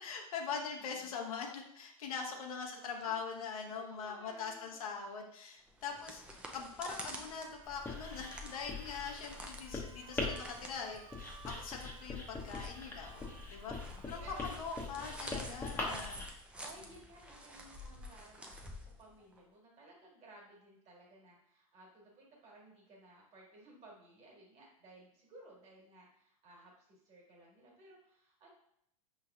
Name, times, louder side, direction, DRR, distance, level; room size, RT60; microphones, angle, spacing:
voice 1, 0.0-16.2, left 6 dB, 70° left, 2 dB, 0.8 m, -42 dB
voice 2, 0.8-1.2 2.5-3.1 3.7-5.2 13.8-14.4 15.3-16.2 16.6-28.5, right 2 dB, 35° right, -2 dB, 1.7 m, -58 dB
sound 1, 5.7-19.4, right 1 dB, 5° right, 0.4 m, -50 dB
sound 2, 7.2-15.0, right 5 dB, 60° right, 0.8 m, -59 dB
Writing, 7.7-16.3, left 3 dB, 10° left, 0.8 m, -42 dB
5.2 x 3.2 x 2.4 m, 0.72 s
hypercardioid pair, 110°, 19 cm